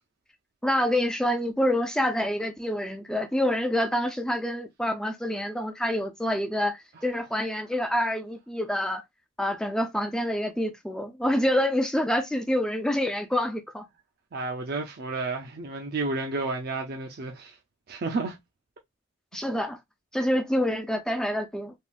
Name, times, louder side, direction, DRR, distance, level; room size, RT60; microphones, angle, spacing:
voice 1, 0.6-9.0 9.4-13.9 19.3-19.8 20.1-21.7, left 1 dB, 5° left, 0.4 m, -27 dB
voice 2, 14.3-17.6 17.9-18.4, right 3 dB, 50° right, 0.5 m, -31 dB
3.5 x 2.4 x 2.4 m
head